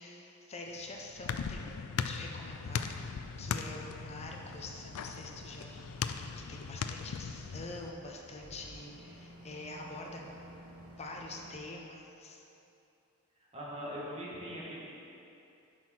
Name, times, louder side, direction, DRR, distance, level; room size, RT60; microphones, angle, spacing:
voice 1, 0.0-10.5 11.0-12.4, left 2 dB, 30° left, 0 dB, 0.6 m, -46 dB
sound 1, 0.7-7.9, left 6 dB, 80° left, 0.4 m, -39 dB
Boat Water vehicle, 2.5-11.5, equal, 85° right, 1.2 m, -54 dB
voice 2, 13.5-14.9, equal, 30° right, -6 dB, 1.6 m, -41 dB
7.7 x 4.7 x 5.9 m, 2.8 s
head